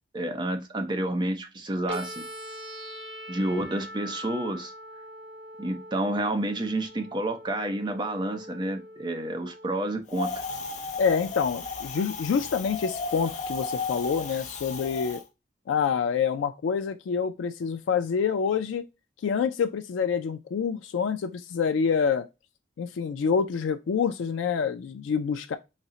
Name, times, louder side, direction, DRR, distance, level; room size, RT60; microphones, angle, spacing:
voice 1, 0.1-2.2 3.3-4.7 5.6-10.5, right 1 dB, 25° right, 0.6 m, -29 dB
sound 1, 1.9-9.9, equal, 75° right, 1.2 m, -42 dB
Wind, 10.1-15.2, left 4 dB, 40° left, 0.6 m, -34 dB
voice 2, 11.0-15.2 15.7-18.8 19.2-22.3 22.8-25.6, left 6 dB, 90° left, 0.3 m, -27 dB
4.0 x 2.0 x 3.6 m
head